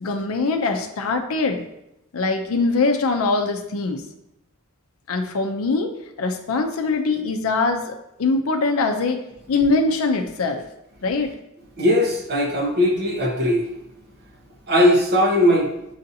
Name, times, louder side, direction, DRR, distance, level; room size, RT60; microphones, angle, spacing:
voice 1, 0.0-1.6 2.1-4.0 5.1-5.9 6.2-10.6 11.0-11.3, left 3 dB, 70° left, 5 dB, 0.5 m, -22 dB
voice 2, 11.8-13.7 14.7-15.7, left 1 dB, 50° right, -1 dB, 0.9 m, -19 dB
6.4 x 2.7 x 2.6 m, 0.84 s
head